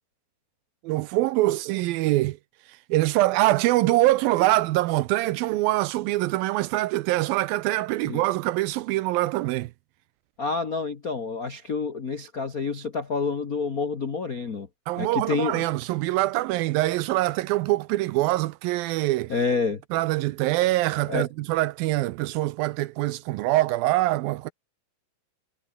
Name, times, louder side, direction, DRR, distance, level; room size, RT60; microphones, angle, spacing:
voice 1, 0.8-2.4 2.9-9.7 14.9-19.3 19.9-24.5, right 17 dB, 80° right, 2.4 m, -24 dB
voice 2, 10.4-14.7 15.0-15.6 19.3-19.8 21.1-21.2, left 4 dB, 70° left, 0.8 m, -28 dB
omnidirectional pair, 4.3 m